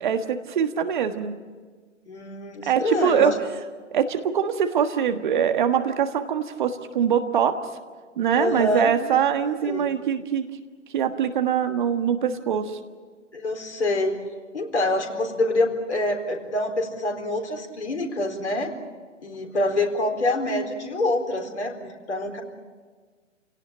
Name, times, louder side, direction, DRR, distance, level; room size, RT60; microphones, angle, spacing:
voice 1, 0.0-1.4 2.6-3.3 3.9-7.5 8.2-10.5 10.9-12.8, right 8 dB, 40° right, 8 dB, 1.6 m, -23 dB
voice 2, 2.1-3.3 8.3-8.9 9.6-9.9 13.3-14.2 14.5-18.7 19.2-22.4, left 2 dB, 60° left, 3 dB, 4.2 m, -26 dB
28.5 x 17.5 x 8.9 m, 1.5 s
figure-of-eight pair, 130°, 38 cm